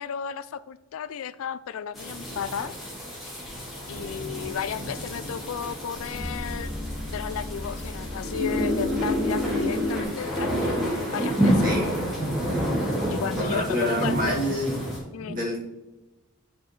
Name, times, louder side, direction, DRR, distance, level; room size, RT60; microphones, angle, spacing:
voice 1, 0.0-2.7 3.9-6.8 7.1-11.7 13.1-14.6 15.1-15.4, left 7 dB, 80° left, 16 dB, 0.3 m, -34 dB
sound 1, 1.9-15.0, equal, ahead, 2.1 m, -30 dB
sound 2, 3.9-10.0, left 1 dB, 60° right, 2.2 m, -31 dB
voice 2, 11.6-11.9 13.3-14.8 15.2-15.6, equal, 40° right, -4 dB, 2.1 m, -27 dB
8.5 x 5.0 x 3.2 m, 1.1 s
head